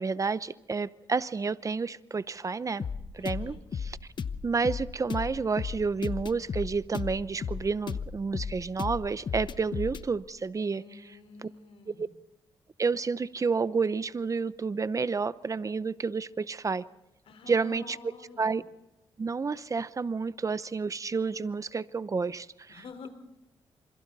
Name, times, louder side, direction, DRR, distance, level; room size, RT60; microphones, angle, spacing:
voice 1, 0.0-2.8 3.1-3.6 4.4-10.8 11.4-11.5 12.0-12.1 12.8-16.8 17.5-18.0 18.4-18.6 19.2-22.7, right 4 dB, 35° right, 16 dB, 0.7 m, -30 dB
sound 1, 2.8-10.1, left 6 dB, 50° left, 1.0 m, -35 dB
voice 2, 3.2-3.6 10.7-12.0 17.3-18.5 22.7-23.1, left 5 dB, 75° left, 6 dB, 4.3 m, -48 dB
28.0 x 26.5 x 4.1 m, 0.92 s
cardioid pair, 90°, 10 cm